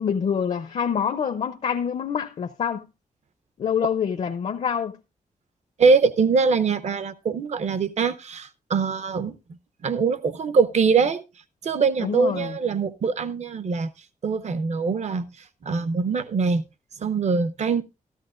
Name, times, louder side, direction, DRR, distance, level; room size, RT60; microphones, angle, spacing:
voice 1, 0.0-2.8 3.6-5.0 12.0-12.6, left 7 dB, 55° left, 0.6 m, -26 dB
voice 2, 5.8-9.4 9.8-11.2 11.6-13.9 14.2-15.2 15.6-16.6 17.0-17.8, right 5 dB, 60° right, 0.7 m, -23 dB
13.5 x 13.5 x 2.4 m
wide cardioid pair, 170°, 13 cm